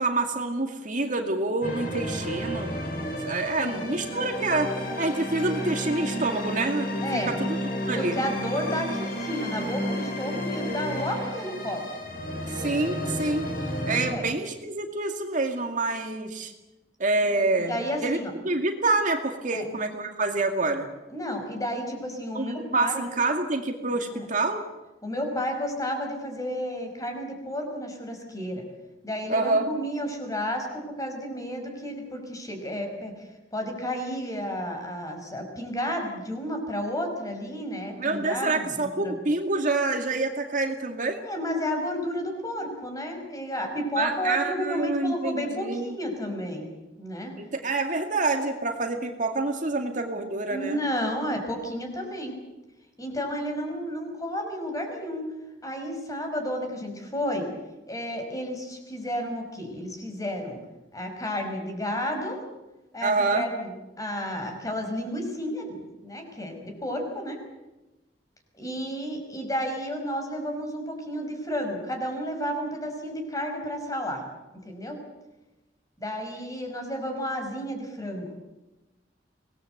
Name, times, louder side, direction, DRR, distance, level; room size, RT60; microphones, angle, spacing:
voice 1, 0.0-2.7 3.2-6.9 7.1-7.6 7.9-8.2 12.5-13.5 13.9-16.5 17.0-20.9 22.3-24.6 29.3-29.7 38.0-41.2 44.0-45.9 47.4-50.8 63.0-63.5, right 3 dB, 45° right, 4 dB, 2.2 m, -27 dB
sound 1, 1.6-14.1, equal, 55° left, 5.5 m, -32 dB
voice 2, 7.0-7.4 8.0-11.9 13.9-14.2 17.7-18.3 19.5-19.7 21.1-23.0 24.1-24.3 25.0-28.6 29.0-33.1 33.5-39.2 41.2-46.7 47.0-47.3 50.5-52.4 53.0-55.3 55.6-57.5 57.9-60.6 60.9-62.4 62.9-67.4 68.5-74.2 74.6-75.0 76.0-78.3, equal, 20° left, 4 dB, 5.3 m, -32 dB
24.5 x 19.0 x 7.9 m, 1.1 s
head